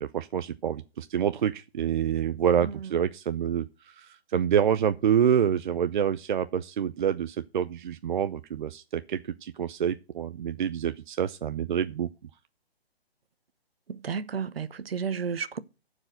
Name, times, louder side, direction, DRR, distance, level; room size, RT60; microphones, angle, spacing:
voice 1, 0.0-12.1, right 8 dB, 50° right, 0.6 m, -27 dB
voice 2, 13.9-15.6, right 6 dB, 70° right, 1.1 m, -32 dB
11.5 x 4.9 x 7.8 m
hypercardioid pair, 145°, 31 cm